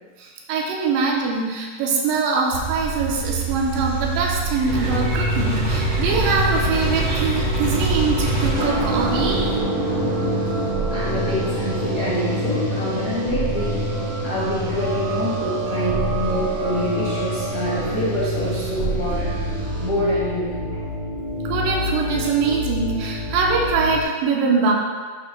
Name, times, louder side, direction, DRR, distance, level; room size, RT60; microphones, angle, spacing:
voice 1, 0.2-9.4 21.4-24.7, right 4 dB, 85° right, -1 dB, 2.6 m, -23 dB
sound 1, 2.5-9.6, right 5 dB, 65° right, 1.6 m, -29 dB
sound 2, 4.7-24.0, equal, 20° left, 1.5 m, -26 dB
sound 3, 8.2-19.9, right 2 dB, 50° right, 2.1 m, -28 dB
voice 2, 10.9-13.8 14.2-19.3 19.8-20.6, left 1 dB, 50° left, -9 dB, 1.0 m, -26 dB
10.5 x 6.6 x 2.3 m, 1.5 s
omnidirectional pair, 3.9 m